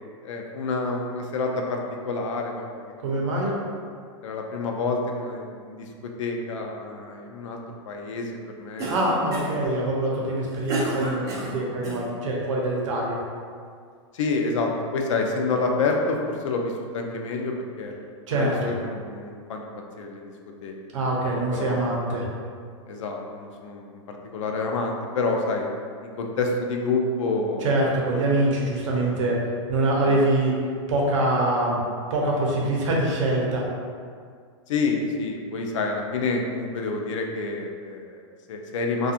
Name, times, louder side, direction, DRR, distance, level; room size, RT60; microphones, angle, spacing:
voice 1, 0.2-2.7 3.0-3.2 3.4-3.8 4.2-7.6 7.8-8.3 8.6-8.9 9.2-9.4 14.1-17.9 18.3-19.7 20.0-20.3 20.6-20.7 21.0-21.2 21.5-21.8 22.9-25.7 26.0-27.7 29.0-29.1 30.0-30.2 34.7-39.1, left 3 dB, 85° left, 2 dB, 0.4 m, -28 dB
voice 2, 3.0-3.5 8.9-13.2 18.3-18.7 20.9-22.3 27.6-29.4 29.7-31.8 32.1-33.7, right 1 dB, 85° right, -3 dB, 0.7 m, -24 dB
Cough, 8.8-9.7 10.2-12.0, right 1 dB, 20° right, 0.4 m, -31 dB
2.7 x 2.3 x 2.4 m, 2.1 s
supercardioid pair, 160°, 16 cm